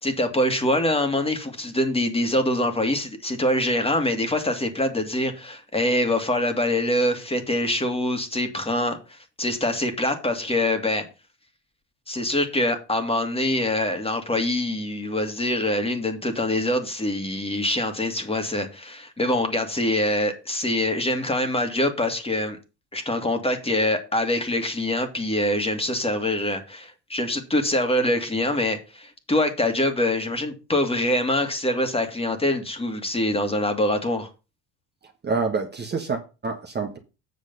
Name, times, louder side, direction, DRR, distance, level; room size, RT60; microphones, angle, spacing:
voice 1, 0.0-11.1 12.1-22.6 22.9-34.3, left 1 dB, 15° left, 2.2 m, -24 dB
voice 2, 35.2-37.0, right 4 dB, 25° right, 1.4 m, -27 dB
8.3 x 6.1 x 5.5 m
supercardioid pair, 90°, 40 cm